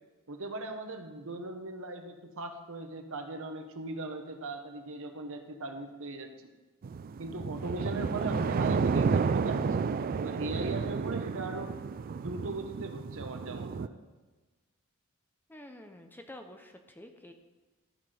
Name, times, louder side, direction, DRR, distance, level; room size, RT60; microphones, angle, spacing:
voice 1, 0.3-6.3 7.2-9.8 10.2-11.7 12.2-13.9, right 2 dB, 65° right, 5 dB, 1.1 m, -39 dB
sound 1, 6.8-13.9, right 5 dB, 40° right, 0.3 m, -31 dB
voice 2, 15.5-17.3, left 1 dB, 10° left, 5 dB, 0.7 m, -49 dB
13.5 x 5.9 x 5.1 m, 1.2 s
head